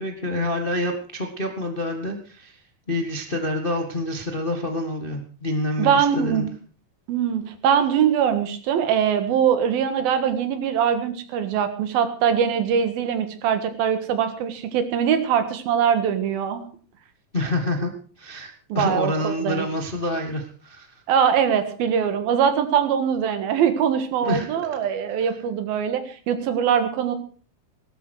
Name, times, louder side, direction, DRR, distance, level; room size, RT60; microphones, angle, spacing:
voice 1, 0.0-2.6 2.9-6.5 17.3-17.9 18.2-21.0 24.2-24.5, left 1 dB, 40° left, 3 dB, 0.7 m, -27 dB
voice 2, 5.8-6.5 7.1-16.7 18.7-19.7 21.1-27.2, right 8 dB, 90° right, 9 dB, 3.5 m, -22 dB
18.0 x 13.0 x 4.8 m, 0.43 s
omnidirectional pair, 4.1 m